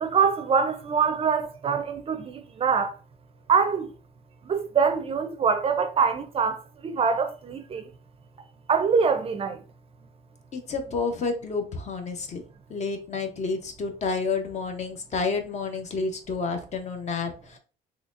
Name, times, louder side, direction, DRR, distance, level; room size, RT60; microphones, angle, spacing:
voice 1, 0.0-3.0 3.5-3.9 4.5-7.9 8.7-9.6, right 6 dB, 35° right, 0.4 m, -24 dB
voice 2, 10.5-12.4 12.7-17.6, left 4 dB, 45° left, 0.8 m, -30 dB
4.0 x 3.0 x 2.5 m
cardioid pair, 110°, 17 cm